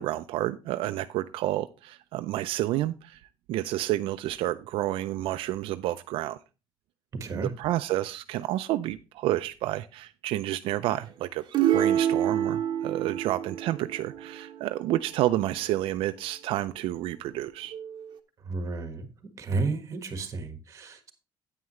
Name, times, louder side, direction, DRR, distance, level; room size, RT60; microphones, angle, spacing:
voice 1, 0.0-3.2 3.5-6.4 7.3-11.4 11.7-17.7, right 14 dB, 85° right, 0.4 m, -30 dB
voice 2, 7.2-7.5 18.4-19.1 19.4-21.1, right 3 dB, 35° right, 1.5 m, -32 dB
sound 1, 11.5-15.2 17.7-18.2, right 10 dB, 55° right, 1.0 m, -28 dB
9.3 x 9.0 x 3.1 m
cardioid pair, 145°, 9 cm